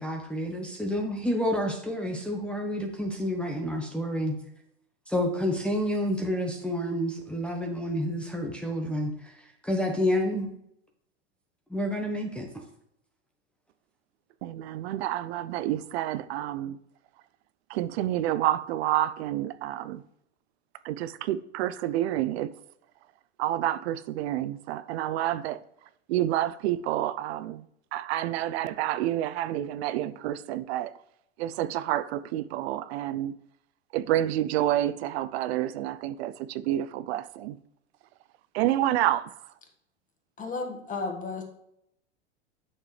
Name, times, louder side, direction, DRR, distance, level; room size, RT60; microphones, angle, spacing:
voice 1, 0.0-4.4 5.1-10.5 11.7-12.6, equal, 5° left, 1.0 m, -29 dB
voice 2, 14.4-16.8 17.7-20.0 20.8-22.5 23.4-25.6 26.1-27.6 27.9-30.9 31.4-33.3 33.9-37.6 38.5-39.4, right 13 dB, 65° right, 0.5 m, -29 dB
voice 3, 40.4-41.4, left 3 dB, 20° left, 1.8 m, -33 dB
8.8 x 6.6 x 3.3 m
hypercardioid pair, 110°, 35 cm